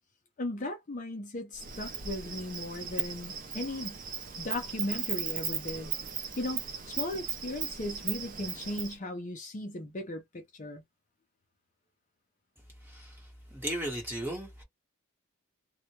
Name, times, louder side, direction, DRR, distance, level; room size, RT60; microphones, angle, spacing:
voice 1, 0.4-4.0 4.4-5.9 6.4-10.8, left 1 dB, 35° left, 0.5 m, -37 dB
Insect, 1.5-8.9, right 7 dB, 40° right, 0.5 m, -37 dB
voice 2, 13.5-14.6, right 1 dB, 10° right, 1.0 m, -35 dB
2.1 x 2.1 x 2.9 m
head